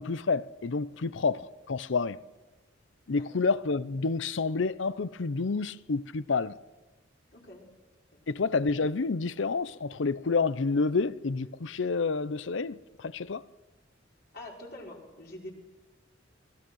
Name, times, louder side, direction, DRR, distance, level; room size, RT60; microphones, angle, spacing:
voice 1, 0.0-2.2 3.1-6.6 8.3-13.4, left 4 dB, 70° left, 0.6 m, -29 dB
voice 2, 3.1-3.5 7.3-7.6 8.1-8.2 14.3-15.5, left 1 dB, 55° left, 5.3 m, -46 dB
27.0 x 19.5 x 6.4 m
head